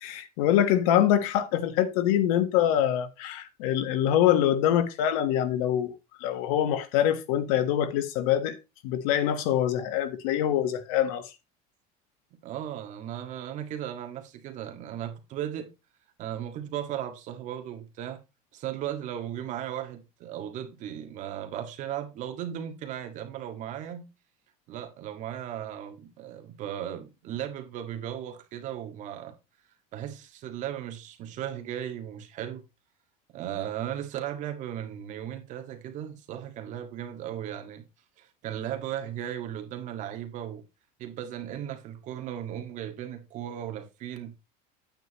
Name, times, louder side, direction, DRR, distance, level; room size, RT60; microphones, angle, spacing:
voice 1, 0.0-5.9 6.2-8.6 8.8-11.3, left 11 dB, 80° left, 1.4 m, -24 dB
voice 2, 12.4-15.7 16.2-18.2 18.5-24.1 24.7-29.3 29.9-32.6 33.3-37.8 38.2-40.6 41.0-44.3, right 10 dB, 45° right, 1.8 m, -36 dB
9.4 x 9.0 x 3.0 m
cardioid pair, 160°, 18 cm